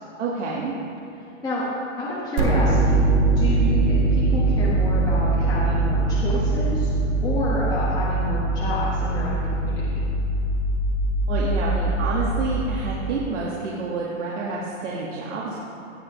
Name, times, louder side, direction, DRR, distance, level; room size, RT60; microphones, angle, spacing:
voice 1, 0.2-0.7 11.3-15.6, right 3 dB, 65° right, -4 dB, 1.7 m, -28 dB
voice 2, 2.0-6.9 7.2-9.8, left 1 dB, 10° left, -7 dB, 1.2 m, -29 dB
sound 1, 2.4-13.3, right 2 dB, 15° right, 0.5 m, -22 dB
16.0 x 8.0 x 3.1 m, 2.9 s
hypercardioid pair, 150°, 39 cm